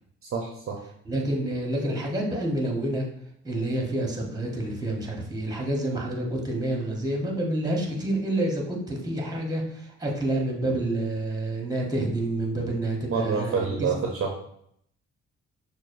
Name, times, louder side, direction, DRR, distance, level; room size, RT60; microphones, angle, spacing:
voice 1, 0.2-0.8 13.1-14.3, right 5 dB, 45° right, 1 dB, 0.6 m, -27 dB
voice 2, 1.1-3.0 3.4-13.9, right 1 dB, 15° right, 0 dB, 1.0 m, -28 dB
6.2 x 2.1 x 2.5 m, 0.70 s
cardioid pair, 90°, 30 cm